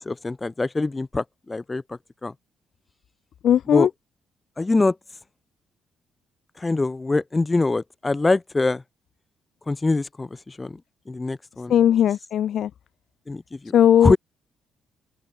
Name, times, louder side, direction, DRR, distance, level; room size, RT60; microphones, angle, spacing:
voice 1, 0.0-1.8 2.2-2.3 3.7-3.9 4.6-4.9 6.6-8.8 9.7-10.7 11.1-11.7 13.3-13.7 14.0-14.2, left 3 dB, 20° left, 1.2 m, -23 dB
voice 2, 3.4-3.9 11.7-12.7 13.7-14.1, left 10 dB, 70° left, 0.6 m, -18 dB
open air
cardioid pair, 90°, 0 cm